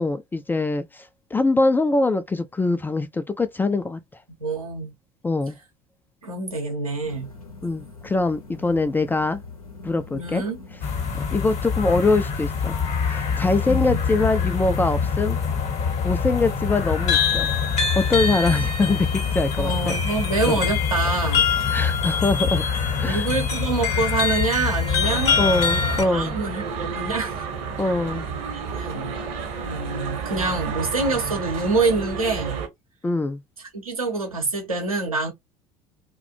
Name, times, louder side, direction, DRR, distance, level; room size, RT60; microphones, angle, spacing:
voice 1, 0.0-4.0 5.2-5.6 7.6-9.4 9.8-10.4 11.3-12.8 13.0-15.4 16.0-17.5 18.0-20.0 20.5-20.6 21.7-22.6 23.0-23.3 25.4-26.4 27.8-28.3 33.0-33.4, left 3 dB, 10° left, 0.3 m, -23 dB
voice 2, 4.4-4.9 6.2-7.3 10.2-10.6 13.7-14.0 19.6-21.5 23.1-25.3 26.1-27.4 28.5-29.2 29.6-32.6 33.7-35.3, right 3 dB, 85° right, 0.8 m, -26 dB
sound 1, 7.0-24.2, left 4 dB, 85° left, 0.7 m, -42 dB
sound 2, 10.8-26.0, left 6 dB, 40° left, 0.9 m, -24 dB
sound 3, 25.0-32.7, right 6 dB, 50° right, 0.9 m, -31 dB
2.4 x 2.1 x 2.5 m
figure-of-eight pair, 65°, 18 cm